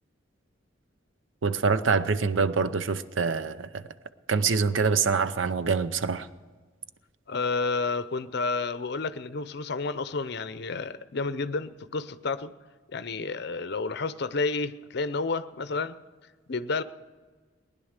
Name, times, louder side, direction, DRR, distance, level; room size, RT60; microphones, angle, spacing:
voice 1, 1.4-3.8 4.3-6.3, right 5 dB, 75° right, 0.7 m, -25 dB
voice 2, 7.3-12.5 12.9-15.9 16.5-16.8, left 4 dB, 55° left, 0.6 m, -30 dB
19.5 x 10.5 x 6.6 m
head